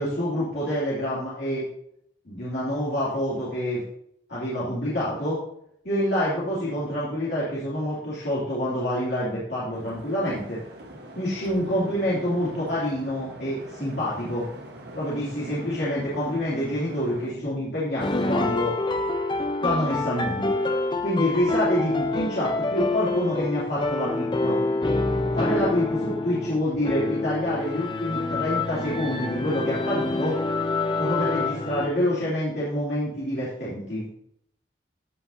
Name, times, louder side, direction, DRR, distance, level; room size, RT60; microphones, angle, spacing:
voice 1, 0.0-1.6 2.2-3.8 4.3-5.4 5.8-10.6 11.2-14.5 14.9-18.7 19.6-20.5 21.0-24.6 25.3-30.4 31.0-34.0, equal, 65° left, -9 dB, 2.8 m, -27 dB
sound 1, 9.7-17.3, right 1 dB, 65° right, 1.4 m, -43 dB
sound 2, 18.0-31.9, left 3 dB, 25° left, 0.6 m, -27 dB
15.0 x 5.6 x 2.7 m, 0.71 s
head